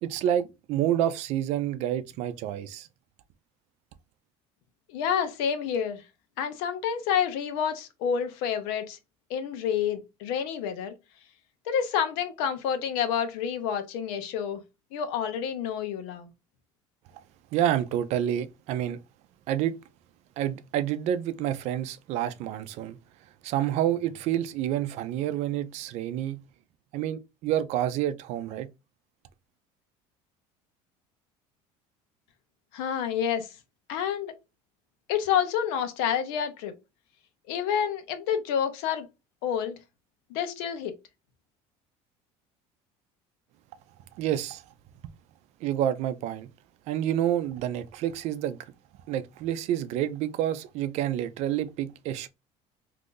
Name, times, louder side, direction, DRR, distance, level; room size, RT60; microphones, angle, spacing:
voice 1, 0.0-2.9 17.1-17.2 17.5-19.0 19.5-19.7 20.4-23.0 23.4-26.4 26.9-28.7 44.2-44.6 45.6-46.5 46.9-48.7 49.1-52.3, right 11 dB, 60° right, 0.4 m, -28 dB
voice 2, 4.9-6.0 6.4-9.0 9.3-11.0 11.7-14.6 14.9-16.3 32.7-33.5 33.9-34.3 35.1-36.7 37.5-39.1 39.4-39.8 40.3-40.9, left 8 dB, 85° left, 0.7 m, -28 dB
2.7 x 2.5 x 3.7 m
cardioid pair, 135°, 13 cm